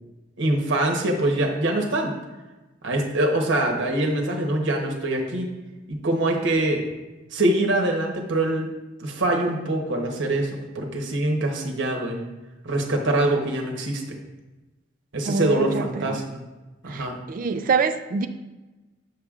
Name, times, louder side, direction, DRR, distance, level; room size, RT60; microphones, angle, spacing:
voice 1, 0.4-2.1 2.8-5.5 5.9-6.8 7.3-8.7 9.0-12.3 12.6-14.2 15.1-16.4 16.8-17.2, right 1 dB, 65° right, 1 dB, 1.0 m, -24 dB
voice 2, 15.3-16.2 16.9-18.3, right 5 dB, 45° right, 9 dB, 0.3 m, -26 dB
6.7 x 6.4 x 2.4 m, 1.1 s
head